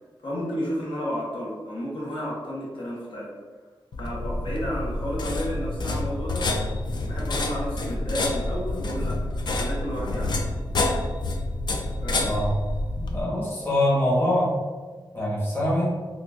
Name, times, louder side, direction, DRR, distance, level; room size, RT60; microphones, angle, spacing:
voice 1, 0.2-3.3 4.0-6.5 7.0-10.4 12.0-12.3, equal, 75° left, -6 dB, 0.9 m, -32 dB
sound 1, 3.9-13.2, left 2 dB, 60° left, 0.4 m, -28 dB
voice 2, 12.2-12.5 13.1-14.5 15.1-15.9, left 1 dB, 25° left, -6 dB, 1.0 m, -24 dB
3.6 x 2.4 x 2.3 m, 1.4 s
wide cardioid pair, 125°, 9 cm